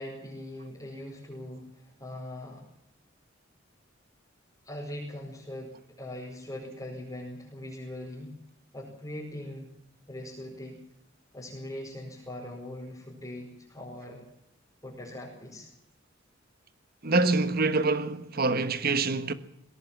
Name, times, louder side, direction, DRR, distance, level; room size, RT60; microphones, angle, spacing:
voice 1, 0.0-2.7 4.6-8.3 8.7-9.7 10.1-10.8 11.3-14.2 14.8-15.7, left 1 dB, 20° left, 5.1 m, -41 dB
voice 2, 17.0-19.3, right 3 dB, 50° right, 1.4 m, -25 dB
21.0 x 17.5 x 7.4 m
head